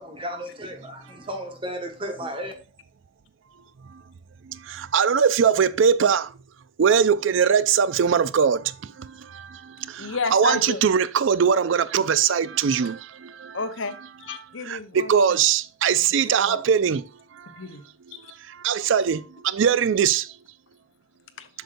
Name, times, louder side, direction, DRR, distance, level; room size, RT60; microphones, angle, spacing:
voice 1, 0.0-2.5, equal, 25° right, 1.5 m, -34 dB
voice 2, 4.9-6.3 6.8-8.6 10.3-12.9 14.7-14.8 15.1-17.0 18.6-19.2 19.5-20.2, right 7 dB, 70° right, 0.4 m, -20 dB
voice 3, 10.0-10.8 13.5-13.9 14.2-15.1 16.2-16.6 17.6-17.8 21.4-21.5, left 3 dB, 70° left, 0.9 m, -30 dB
7.8 x 6.6 x 2.6 m
head